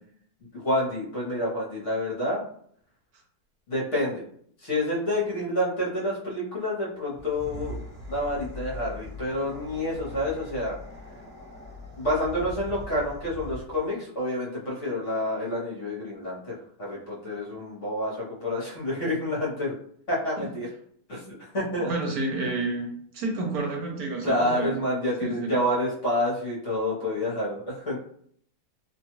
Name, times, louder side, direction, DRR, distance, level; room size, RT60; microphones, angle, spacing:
voice 1, 0.5-2.4 3.7-4.2 4.6-7.8 8.1-10.8 12.0-19.8 20.1-20.7 21.1-21.9 24.2-28.0, left 1 dB, 50° left, -6 dB, 1.1 m, -28 dB
sound 1, 7.1-13.9, left 1 dB, 15° right, 1.2 m, -41 dB
voice 2, 21.8-22.9 23.1-24.7 25.2-25.5, right 3 dB, 70° right, 1 dB, 1.0 m, -30 dB
2.8 x 2.3 x 3.0 m, 0.62 s
omnidirectional pair, 1.8 m